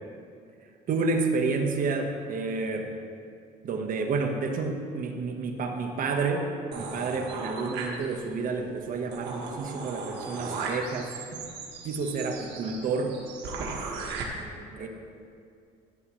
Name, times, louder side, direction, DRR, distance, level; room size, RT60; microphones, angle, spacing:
voice 1, 0.9-2.9 3.6-6.5 6.7-11.5 11.8-13.1 14.8-14.9, right 4 dB, 55° right, 4 dB, 1.3 m, -30 dB
sound 1, 6.7-8.4 8.8-8.9 9.1-14.2, right 4 dB, 85° right, 1.7 m, -37 dB
voice 2, 12.3-12.7 13.6-14.9, right 2 dB, 35° right, -3 dB, 2.4 m, -50 dB
15.0 x 9.0 x 3.2 m, 2.3 s
cardioid pair, 110°, 17 cm